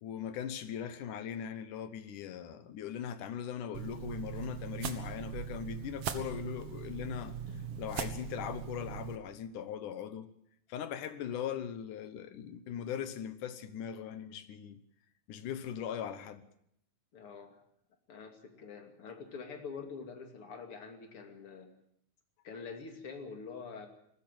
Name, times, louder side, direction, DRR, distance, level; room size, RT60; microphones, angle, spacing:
voice 1, 0.0-7.4 7.8-10.3 10.7-14.8 15.3-16.5, left 9 dB, 65° left, 2.5 m, -40 dB
sound 1, 3.7-9.2, right 8 dB, 55° right, 1.8 m, -40 dB
voice 2, 17.1-17.6 18.1-21.7 22.4-23.9, left 5 dB, 40° left, 3.1 m, -45 dB
20.0 x 15.0 x 9.1 m
omnidirectional pair, 4.1 m